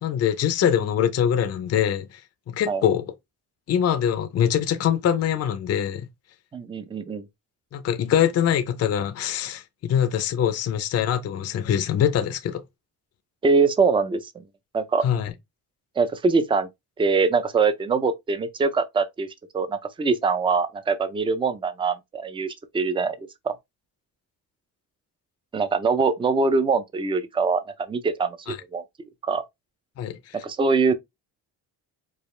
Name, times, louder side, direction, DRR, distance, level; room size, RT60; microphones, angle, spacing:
voice 1, 0.0-2.2 2.5-3.1 3.7-6.1 7.7-12.6 15.0-15.3 28.5-28.6 30.0-30.4, left 9 dB, 40° left, 0.5 m, -23 dB
voice 2, 6.5-7.3 13.4-14.3 14.7-15.0 16.0-16.7 17.0-19.3 19.5-23.2 23.4-23.6 25.5-27.6 27.9-28.8 29.2-29.4 30.4-30.9, right 4 dB, 15° right, 0.4 m, -23 dB
4.8 x 2.4 x 3.1 m
cardioid pair, 140°, 38 cm